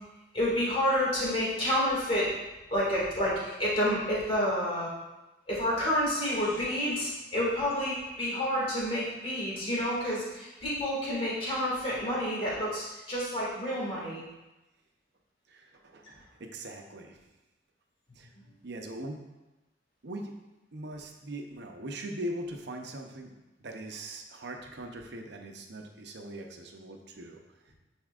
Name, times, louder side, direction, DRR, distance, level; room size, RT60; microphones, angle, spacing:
voice 1, 0.3-2.3 2.7-4.9 5.5-14.2, equal, 30° left, -7 dB, 2.1 m, -29 dB
voice 2, 15.5-17.2 18.2-18.3 18.6-19.2 20.0-20.3 20.7-23.3 23.6-27.4, right 1 dB, 60° right, 3 dB, 0.7 m, -41 dB
9.8 x 4.4 x 2.4 m, 1.0 s
head